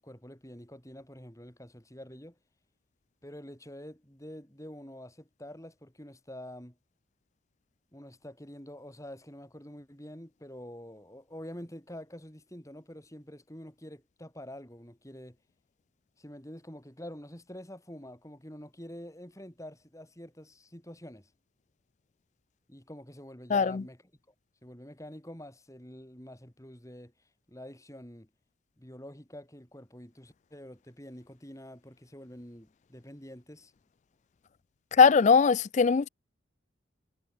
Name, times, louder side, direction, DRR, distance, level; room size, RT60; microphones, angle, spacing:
voice 1, 0.0-2.4 3.2-6.8 7.9-15.4 16.2-21.3 22.7-24.3 24.6-28.3 28.8-33.7, equal, 15° left, 3.8 m, -47 dB
voice 2, 35.0-36.1, left 5 dB, 35° left, 0.3 m, -20 dB
head